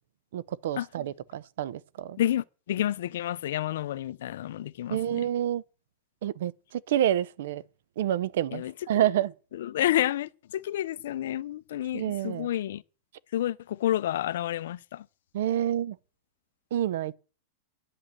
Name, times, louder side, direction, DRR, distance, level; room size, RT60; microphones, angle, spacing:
voice 1, 0.3-2.2 4.9-5.6 6.2-7.6 8.0-9.3 11.9-12.5 15.3-16.0 16.7-17.2, right 11 dB, 75° right, 0.6 m, -28 dB
voice 2, 2.2-5.3 8.5-8.7 9.5-12.8 13.3-15.1, left 12 dB, 75° left, 0.5 m, -30 dB
9.9 x 8.7 x 6.7 m
supercardioid pair, 140°, 0 cm